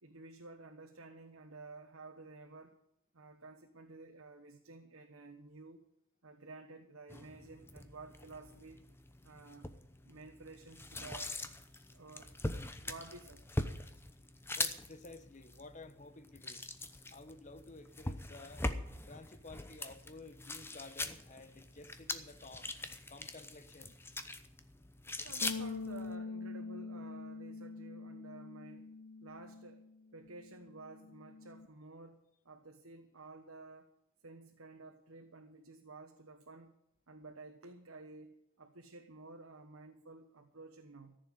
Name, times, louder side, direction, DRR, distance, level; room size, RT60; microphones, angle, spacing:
voice 1, 0.0-2.8 3.1-5.8 6.2-8.8 9.2-9.7 10.0-11.4 11.9-12.3 12.8-13.5 25.2-28.9 29.2-29.8 30.1-33.9 34.2-36.8 37.1-41.2, right 3 dB, 75° right, 3 dB, 1.2 m, -52 dB
sound 1, 7.1-26.1, left 2 dB, 10° left, 0.8 m, -43 dB
voice 2, 14.5-16.6 17.1-18.6 19.1-22.7 23.1-24.0, left 2 dB, 35° left, 10 dB, 1.0 m, -53 dB
Bass guitar, 25.4-31.7, left 4 dB, 55° left, 0.4 m, -45 dB
14.5 x 7.0 x 9.2 m, 0.82 s
head